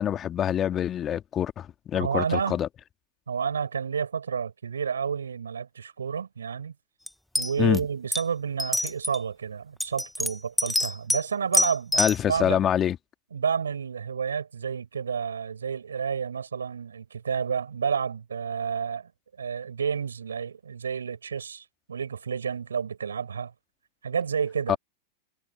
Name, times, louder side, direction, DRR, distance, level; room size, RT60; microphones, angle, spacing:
voice 1, 0.0-2.7 7.6-7.8 12.0-13.0 24.7-24.8, left 10 dB, 30° left, 2.0 m, -25 dB
voice 2, 1.9-2.6 3.3-6.7 7.4-12.6 13.3-19.1 19.4-23.5 24.0-24.8, right 6 dB, 80° right, 5.2 m, -30 dB
sound 1, 7.1-7.2 7.4-7.8 8.1-8.2 8.6-9.2 9.8-11.2 11.5-12.2, left 1 dB, 5° left, 1.2 m, -25 dB
hypercardioid pair, 95°, 0 cm